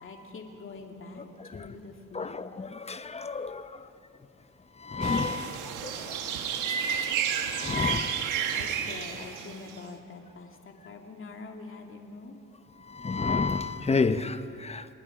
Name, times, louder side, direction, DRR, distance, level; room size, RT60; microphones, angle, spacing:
voice 1, 0.0-2.4 8.5-12.4, left 3 dB, 45° left, 2.5 m, -44 dB
voice 2, 2.2-3.5 4.9-5.4 7.6-8.0 13.0-14.3, left 4 dB, 20° left, 0.9 m, -28 dB
sound 1, 5.0-9.8, right 8 dB, 85° right, 1.5 m, -31 dB
27.5 x 20.0 x 5.1 m
cardioid pair, 90°, 30 cm